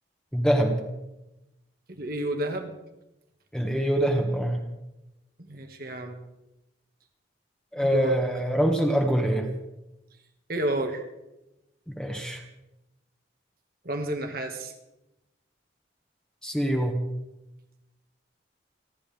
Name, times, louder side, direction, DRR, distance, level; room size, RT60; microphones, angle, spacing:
voice 1, 0.3-0.8 3.5-4.6 7.7-9.5 11.9-12.4 16.4-17.0, equal, 5° left, 2 dB, 1.8 m, -24 dB
voice 2, 1.9-2.7 5.5-6.2 7.8-8.2 10.5-11.0 13.8-14.7, right 1 dB, 50° right, 4 dB, 2.0 m, -30 dB
30.0 x 12.5 x 3.6 m, 0.95 s
head